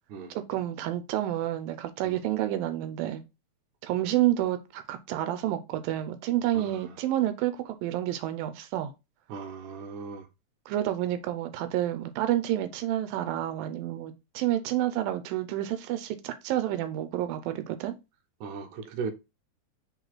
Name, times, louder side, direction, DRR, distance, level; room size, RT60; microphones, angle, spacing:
voice 1, 0.5-3.2 3.8-8.9 10.7-17.9, right 13 dB, 90° right, 2.4 m, -29 dB
voice 2, 6.6-6.9 9.3-10.3 18.4-19.1, right 5 dB, 70° right, 2.1 m, -37 dB
5.3 x 4.0 x 4.5 m
omnidirectional pair, 4.0 m